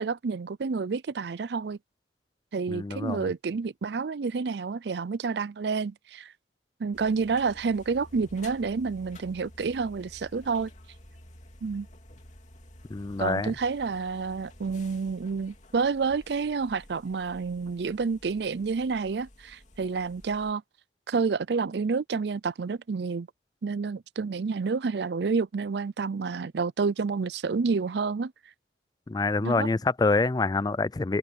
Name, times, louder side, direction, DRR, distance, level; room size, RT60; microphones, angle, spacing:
voice 1, 0.0-1.8 2.5-6.3 6.8-10.7 11.6-11.9 13.2-20.6 21.1-23.3 23.6-28.3 29.4-29.7, right 4 dB, 65° right, 0.5 m, -29 dB
voice 2, 2.7-3.3 12.9-13.5 29.1-31.2, left 3 dB, 20° left, 0.3 m, -26 dB
sound 1, 6.9-20.5, left 1 dB, 40° left, 2.7 m, -51 dB
open air
head